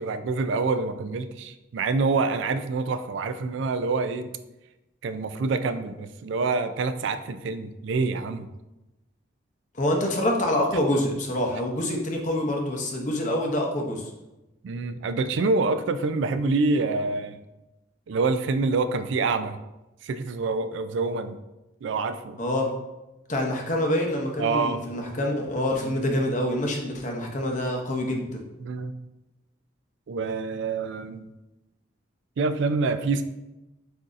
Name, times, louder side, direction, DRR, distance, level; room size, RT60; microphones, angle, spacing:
voice 1, 0.0-4.3 5.0-8.5 14.6-17.4 18.1-19.6 20.0-21.4 21.8-22.4 24.4-24.8 25.8-26.0 28.6-29.0 30.1-31.2 32.4-33.2, right 3 dB, 60° right, 10 dB, 0.3 m, -26 dB
voice 2, 9.8-14.1 22.4-22.7 23.3-28.4, left 1 dB, 35° left, 1 dB, 0.7 m, -26 dB
7.6 x 2.7 x 2.5 m, 0.98 s
head